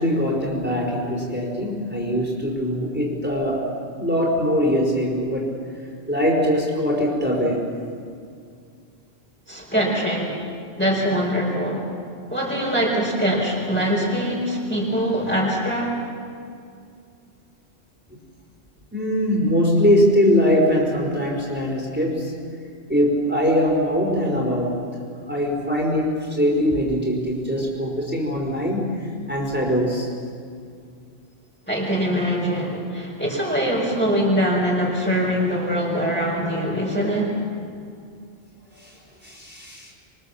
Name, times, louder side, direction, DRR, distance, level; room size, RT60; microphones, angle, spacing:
voice 1, 0.0-5.5 6.1-7.7 18.9-22.3 22.9-24.8 25.3-30.1 38.8-38.9 39.2-39.9, equal, 10° right, -3 dB, 4.8 m, -22 dB
voice 2, 9.5-10.4 10.8-11.9 12.3-16.0 31.7-37.3, equal, 10° left, -3 dB, 4.4 m, -23 dB
26.0 x 23.5 x 7.3 m, 2.3 s
omnidirectional pair, 1.1 m